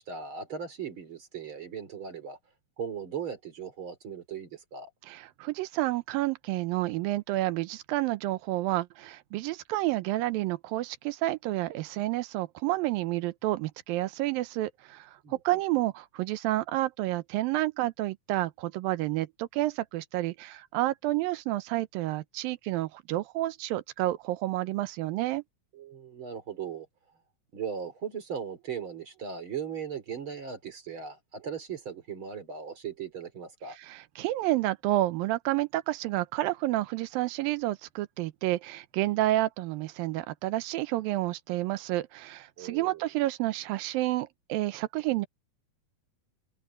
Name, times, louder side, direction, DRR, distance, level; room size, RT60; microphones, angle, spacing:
voice 1, 0.0-2.4 2.8-4.9 15.2-15.4 25.7-26.9 27.5-33.8 42.6-43.1, right 7 dB, 35° right, 4.0 m, -38 dB
voice 2, 5.1-25.4 33.8-45.3, right 16 dB, 85° right, 2.6 m, -30 dB
omnidirectional pair, 4.0 m